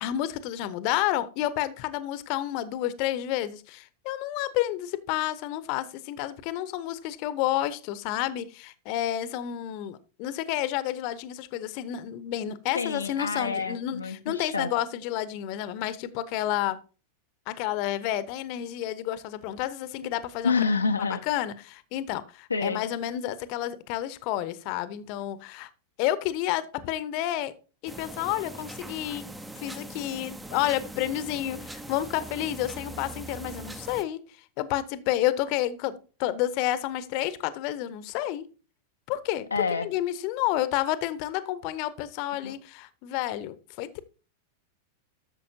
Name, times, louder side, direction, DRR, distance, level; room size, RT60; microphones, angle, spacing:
voice 1, 0.0-16.8 17.5-20.5 21.2-25.7 26.0-27.5 27.8-29.3 29.6-34.2 34.6-38.5 39.1-39.5 39.8-44.0, left 13 dB, 45° left, 0.9 m, -30 dB
voice 2, 12.4-14.7 20.4-21.2 22.5-22.8 39.5-39.9 42.4-42.5, left 4 dB, 80° left, 0.7 m, -28 dB
sound 1, 27.9-34.0, right 2 dB, 10° right, 0.8 m, -41 dB
13.0 x 6.9 x 2.7 m
figure-of-eight pair, 90°, 0 cm